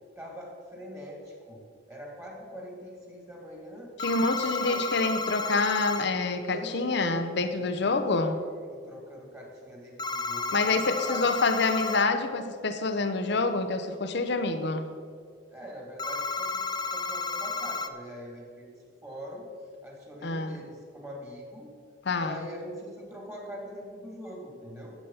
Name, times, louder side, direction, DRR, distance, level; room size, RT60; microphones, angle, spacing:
voice 1, 0.2-1.6 1.9-3.9 4.2-4.9 6.4-11.4 15.5-16.6 16.9-19.4 19.8-21.7 22.2-24.9, equal, 15° right, -2 dB, 2.8 m, -43 dB
voice 2, 4.0-8.4 10.5-14.9 20.2-20.6 22.1-22.4, left 3 dB, 65° left, 8 dB, 0.7 m, -27 dB
sound 1, 4.0-6.1 10.0-12.1 16.0-17.9, left 4 dB, 20° left, 0.5 m, -32 dB
12.0 x 8.3 x 5.7 m, 2.2 s
head